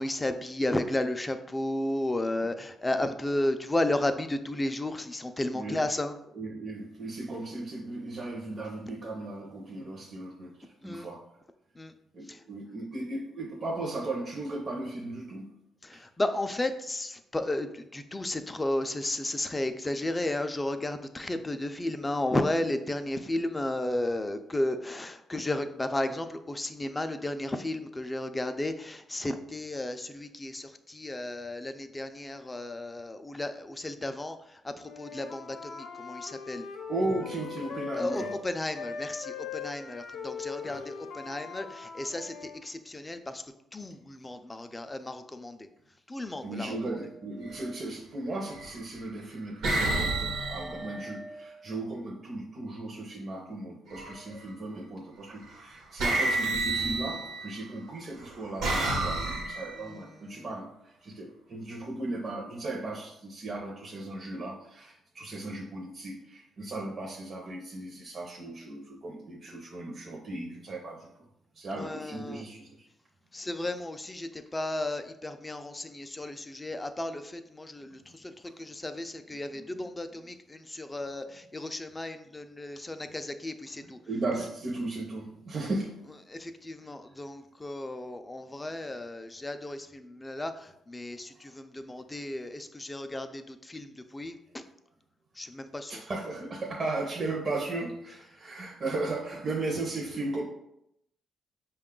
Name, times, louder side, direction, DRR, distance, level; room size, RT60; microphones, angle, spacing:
voice 1, 0.0-6.1 10.8-11.1 11.8-11.9 12.3-12.4 15.9-34.4 34.6-36.7 38.0-43.4 43.7-45.6 46.1-46.7 59.1-59.2 59.8-60.5 71.7-72.4 73.3-84.0 86.3-90.5 90.9-94.4 95.4-95.9, left 1 dB, 15° left, 8 dB, 0.4 m, -33 dB
voice 2, 5.5-5.9 6.3-11.2 12.1-15.5 15.9-16.0 36.9-38.3 40.6-40.9 46.4-71.1 71.5-72.9 73.4-73.5 79.5-79.9 80.9-81.0 83.8-86.0 89.4-89.5 91.3-91.5 95.9-100.4, right 2 dB, 45° right, -1 dB, 0.6 m, -36 dB
Wind instrument woodwind instrument, 34.8-38.4 38.7-42.6, left 6 dB, 70° left, 0.6 m, -40 dB
sound 1, 47.4-47.6 48.5-49.0 49.6-51.7 53.9-54.4 55.5-55.6 56.0-57.6 58.2-59.9, right 2 dB, 80° right, 1.0 m, -30 dB
5.1 x 2.3 x 3.7 m, 0.80 s
cardioid pair, 90°, 0 cm